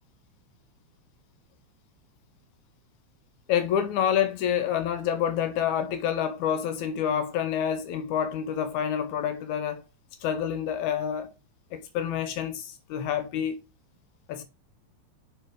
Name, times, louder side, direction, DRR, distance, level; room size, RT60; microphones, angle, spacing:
voice 1, 3.5-9.8 10.2-11.3 11.7-13.6 14.3-14.4, left 9 dB, 85° left, 2.2 m, -28 dB
6.3 x 3.7 x 4.8 m
omnidirectional pair, 3.3 m